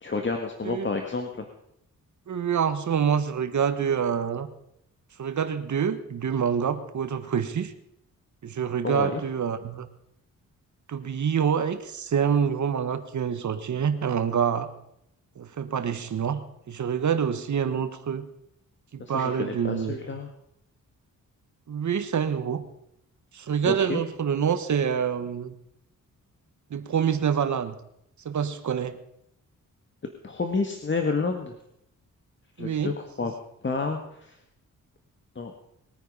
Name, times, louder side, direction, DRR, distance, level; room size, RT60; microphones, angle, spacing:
voice 1, 0.0-1.4 8.8-9.2 19.0-20.3 23.6-24.0 30.2-31.5 32.6-33.3 33.6-34.3 35.4-35.5, left 4 dB, 35° left, 4 dB, 1.8 m, -30 dB
voice 2, 2.3-4.5 5.2-7.7 8.4-9.9 10.9-14.7 15.4-16.4 16.7-18.3 18.9-20.0 21.7-22.6 23.3-25.5 26.7-27.7 28.2-29.0 32.6-32.9, right 7 dB, 60° right, 10 dB, 1.4 m, -26 dB
21.5 x 9.4 x 5.5 m, 0.75 s
cardioid pair, 80°, 33 cm